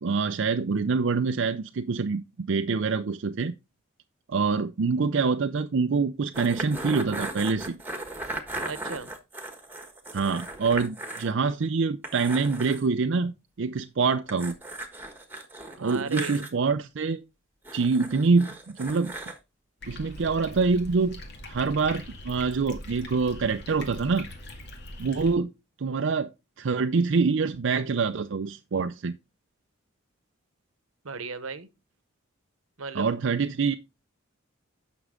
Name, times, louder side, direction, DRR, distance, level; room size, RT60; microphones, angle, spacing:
voice 1, 0.0-2.2 2.5-3.5 4.3-7.8 10.1-14.5 15.8-17.2 17.7-19.1 19.9-21.2 21.5-24.3 25.0-25.5 25.8-26.3 26.6-29.1 32.9-33.7, right 4 dB, 65° right, 0.5 m, -25 dB
sound 1, 6.3-11.3 11.6-11.7 12.0-12.8 14.3-16.5 17.6-19.4, right 1 dB, 10° right, 1.4 m, -37 dB
voice 2, 8.6-9.1 15.7-16.5 31.0-31.7 32.8-33.1, right 4 dB, 85° right, 1.1 m, -35 dB
sound 2, 19.8-25.3, left 1 dB, 55° left, 2.2 m, -42 dB
9.7 x 6.1 x 3.7 m
head